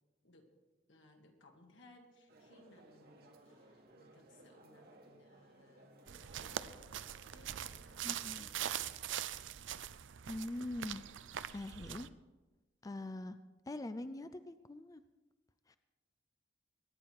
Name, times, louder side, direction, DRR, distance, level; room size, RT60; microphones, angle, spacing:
voice 1, 0.2-0.6 0.9-6.9 7.3-8.6, left 2 dB, 80° left, 3 dB, 2.2 m, -63 dB
sound 1, 2.3-8.0, right 1 dB, 55° right, 1.8 m, -61 dB
sound 2, 6.1-12.1, right 10 dB, 80° right, 0.5 m, -43 dB
voice 2, 8.0-8.5 10.3-11.0 11.5-12.1 12.8-13.4 13.7-15.0 15.7-15.8, left 1 dB, 20° left, 11 dB, 0.4 m, -43 dB
23.0 x 9.8 x 4.7 m, 1.2 s
head